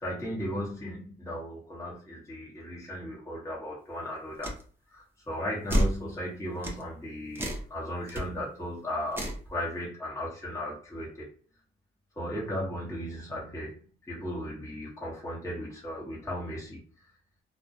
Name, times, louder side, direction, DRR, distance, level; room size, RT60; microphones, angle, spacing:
voice 1, 0.0-4.6 4.9-11.3 12.2-13.8 14.1-16.8, equal, 15° left, -6 dB, 1.0 m, -36 dB
sound 1, 4.4-4.6 5.7-6.0 6.6-6.8 7.3-7.7 8.1-8.2 9.1-9.4, equal, 10° right, 0.6 m, -28 dB
2.3 x 2.1 x 2.7 m, 0.42 s
cardioid pair, 90°, 20 cm